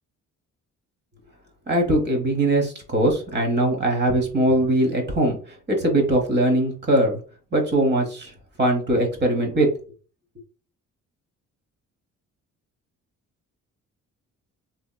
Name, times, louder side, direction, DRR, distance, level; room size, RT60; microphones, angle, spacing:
voice 1, 1.7-7.2 7.5-8.3 8.6-9.7, right 1 dB, 35° right, 1 dB, 1.0 m, -21 dB
2.8 x 2.7 x 2.2 m, 0.39 s
cardioid pair, 90°, 30 cm